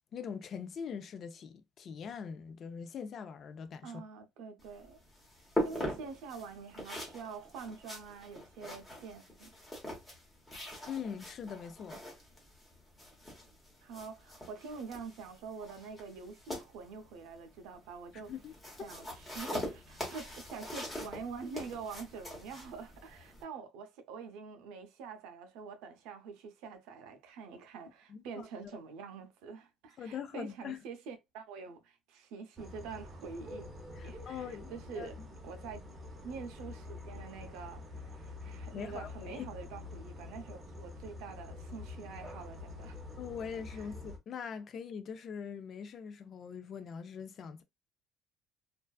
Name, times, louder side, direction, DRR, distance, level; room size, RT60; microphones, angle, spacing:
voice 1, 0.1-4.0 10.9-12.0 18.1-18.9 28.1-28.5 30.0-30.8 33.9-35.3 38.7-39.5 43.2-47.6, left 7 dB, 35° left, 0.3 m, -42 dB
voice 2, 3.8-5.0 5.6-9.5 13.8-18.3 18.8-33.7 34.0-35.8 36.2-43.0 43.7-43.8, right 5 dB, 85° right, 0.6 m, -46 dB
sound 1, 4.6-23.4, equal, 10° left, 0.9 m, -43 dB
sound 2, 32.6-44.2, left 2 dB, 15° right, 0.6 m, -47 dB
2.5 x 2.3 x 2.3 m
cardioid pair, 165°, 0 cm